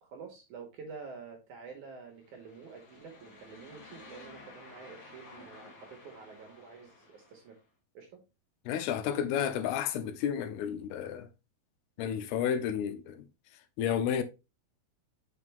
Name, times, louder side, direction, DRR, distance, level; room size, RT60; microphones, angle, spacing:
voice 1, 0.0-7.6 7.9-8.1 12.0-12.1, right 5 dB, 65° right, 2.1 m, -48 dB
sound 1, 2.2-7.6, left 3 dB, 65° left, 1.1 m, -53 dB
voice 2, 8.7-11.3 12.0-13.2 13.8-14.2, left 9 dB, 85° left, 2.6 m, -31 dB
5.9 x 4.8 x 3.3 m
omnidirectional pair, 4.6 m